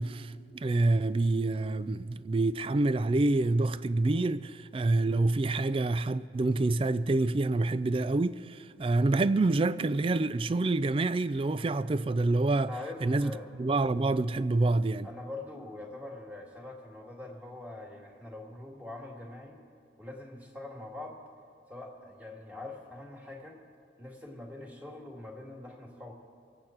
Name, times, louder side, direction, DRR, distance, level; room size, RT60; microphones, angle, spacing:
voice 1, 0.0-12.7 13.0-13.3 13.6-15.1, right 2 dB, 30° right, 0.3 m, -27 dB
voice 2, 12.7-13.5 15.0-19.6 20.0-21.2 21.7-23.6 24.0-26.1, left 2 dB, 10° right, 1.9 m, -43 dB
25.0 x 8.5 x 4.4 m
head